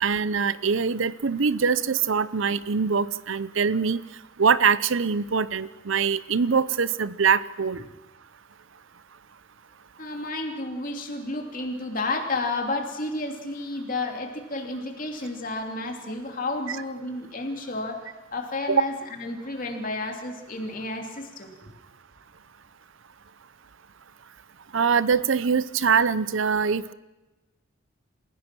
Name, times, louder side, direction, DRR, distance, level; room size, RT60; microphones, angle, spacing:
voice 1, 0.0-4.0 4.4-7.8 18.7-18.8 24.7-26.9, right 6 dB, 70° right, 17 dB, 0.7 m, -23 dB
voice 2, 10.0-21.7, left 2 dB, 40° left, 3 dB, 2.9 m, -31 dB
28.0 x 16.0 x 6.1 m, 1.1 s
head